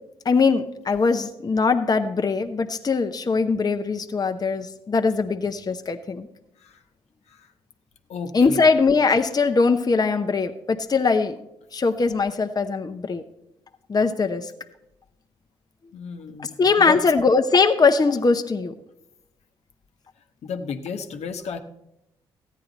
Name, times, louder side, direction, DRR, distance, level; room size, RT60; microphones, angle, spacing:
voice 1, 0.2-6.3 8.3-11.4 11.7-13.2 13.9-14.5 16.6-18.7, left 4 dB, 35° left, 6 dB, 0.8 m, -21 dB
voice 2, 8.1-8.6 15.9-17.0 20.4-21.6, left 5 dB, 65° left, 6 dB, 0.9 m, -33 dB
14.0 x 9.3 x 4.0 m, 0.87 s
hypercardioid pair, 50°, 12 cm